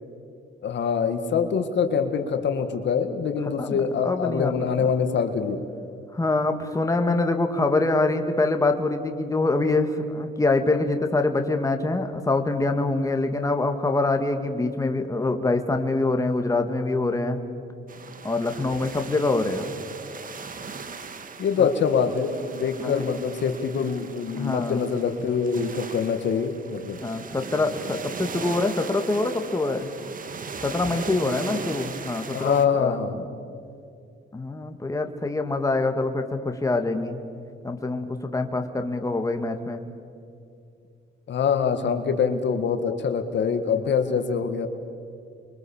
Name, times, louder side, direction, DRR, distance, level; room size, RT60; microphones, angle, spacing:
voice 1, 0.6-5.6 21.4-27.0 32.3-33.2 41.3-44.7, left 6 dB, 65° left, 7 dB, 1.9 m, -24 dB
voice 2, 3.6-4.5 4.8-4.9 6.1-17.4 18.2-19.6 22.8-23.1 24.4-24.8 27.0-29.9 30.6-33.0 34.3-37.2 37.6-39.8, left 2 dB, 15° left, 5 dB, 2.0 m, -25 dB
sound 1, 17.9-32.7, right 5 dB, 45° right, 1.8 m, -38 dB
30.0 x 23.5 x 7.3 m, 2.4 s
cardioid pair, 90°, 20 cm